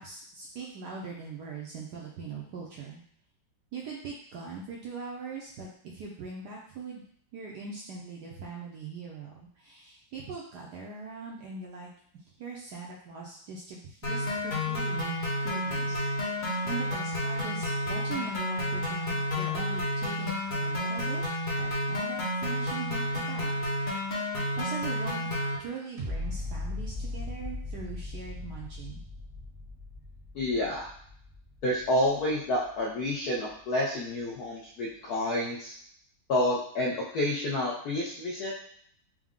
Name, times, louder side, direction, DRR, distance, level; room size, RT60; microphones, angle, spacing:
voice 1, 0.0-3.0 3.7-7.0 7.3-11.9 12.4-15.2 15.4-21.2 21.6-23.6 23.9-24.3 24.6-28.9, right 4 dB, 70° right, -3 dB, 1.0 m, -41 dB
sound 1, 14.0-25.5, left 1 dB, 45° left, 0.6 m, -31 dB
sound 2, 26.0-33.0 33.5-33.6, left 2 dB, 45° right, 0.8 m, -39 dB
voice 2, 30.3-30.9 31.6-35.8 36.3-38.5, left 1 dB, 75° left, -4 dB, 0.9 m, -29 dB
4.6 x 2.1 x 3.6 m, 0.63 s
omnidirectional pair, 2.3 m